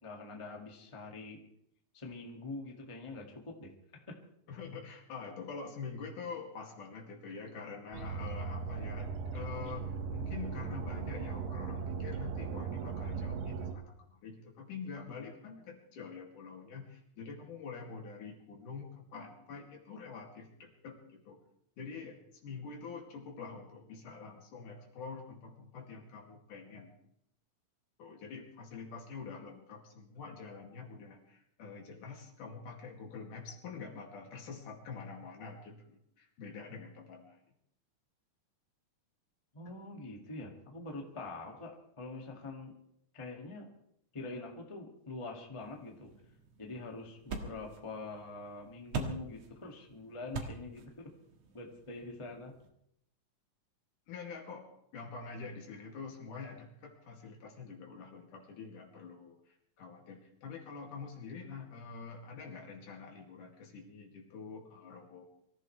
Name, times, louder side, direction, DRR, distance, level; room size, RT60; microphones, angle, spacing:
voice 1, 0.0-1.4 1.9-4.0 39.5-41.7 42.0-42.7 43.1-43.7 44.1-46.1 46.6-51.1 51.5-52.5, left 3 dB, 15° left, 1 dB, 1.4 m, -44 dB
voice 2, 4.5-21.4 21.8-26.9 28.0-37.4 39.7-39.8 54.1-54.7 54.9-65.3, left 5 dB, 70° left, 0 dB, 3.8 m, -46 dB
sound 1, 7.9-13.7, right 5 dB, 90° right, 3.1 m, -38 dB
sound 2, 45.6-52.7, right 4 dB, 55° right, 2.5 m, -45 dB
25.0 x 14.5 x 3.3 m, 0.74 s
omnidirectional pair, 3.9 m